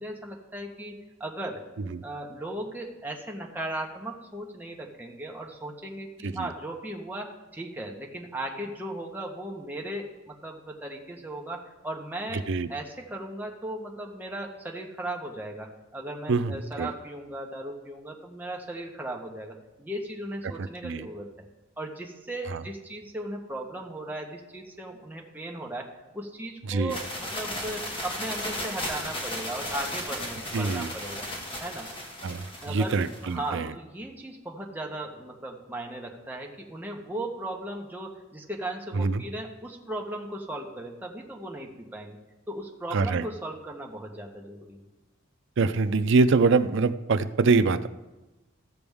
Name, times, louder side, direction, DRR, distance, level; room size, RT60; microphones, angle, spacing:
voice 1, 0.0-1.6 2.0-21.5 21.8-31.3 31.6-31.9 32.6-42.2 42.5-44.8, right 1 dB, 10° right, 0 dB, 1.1 m, -37 dB
voice 2, 16.3-16.9 20.8-21.1 22.5-22.6 26.7-27.0 30.5-30.9 32.2-33.7 38.9-39.2 42.9-43.2 45.6-47.9, right 4 dB, 65° right, 11 dB, 0.5 m, -24 dB
sound 1, 26.9-33.3, left 1 dB, 25° left, 1.5 m, -35 dB
15.0 x 6.9 x 3.5 m, 1.1 s
head